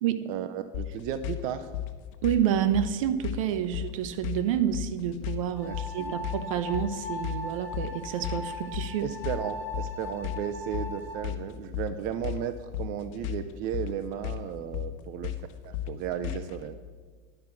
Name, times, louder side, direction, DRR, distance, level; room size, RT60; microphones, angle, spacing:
voice 1, 0.3-1.7 5.6-6.1 9.0-15.3 15.6-16.8, right 9 dB, 55° right, 10 dB, 0.7 m, -34 dB
sound 1, 0.7-16.6, left 13 dB, 65° left, 1.1 m, -35 dB
voice 2, 2.2-9.1, right 10 dB, 75° right, 12 dB, 0.9 m, -28 dB
sound 2, 5.6-11.1, left 1 dB, 10° left, 2.7 m, -39 dB
11.0 x 6.0 x 8.4 m, 1.5 s
supercardioid pair, 115°, 17 cm